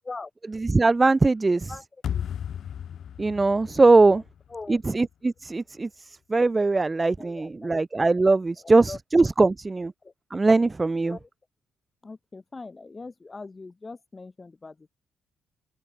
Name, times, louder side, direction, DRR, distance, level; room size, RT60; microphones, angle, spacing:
voice 1, 0.7-1.7 3.2-4.2 4.7-9.9 10.3-11.2, right 3 dB, 20° right, 0.5 m, -21 dB
sound 1, 2.0-5.1, left 9 dB, 60° left, 0.8 m, -35 dB
voice 2, 7.2-7.7 8.6-9.0 10.0-10.1 11.0-11.3 12.0-14.9, left 3 dB, 25° left, 4.2 m, -41 dB
open air
cardioid pair, 90°, 0 cm